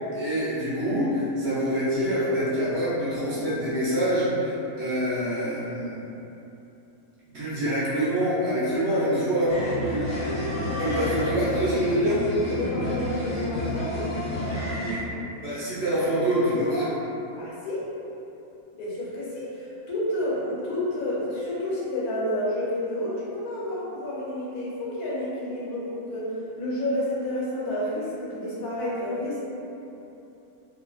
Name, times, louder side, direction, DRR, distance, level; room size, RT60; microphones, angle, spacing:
voice 1, 0.1-6.0 7.3-9.5 9.9-10.0 10.8-12.2 15.4-16.9, equal, 55° right, -11 dB, 0.9 m, -25 dB
sound 1, 9.5-15.0, left 1 dB, 50° left, 0.4 m, -29 dB
voice 2, 10.7-11.6 12.5-14.0 17.4-17.9 18.8-29.4, left 1 dB, 85° left, -7 dB, 1.2 m, -30 dB
2.9 x 2.3 x 2.3 m, 2.9 s
omnidirectional pair, 1.6 m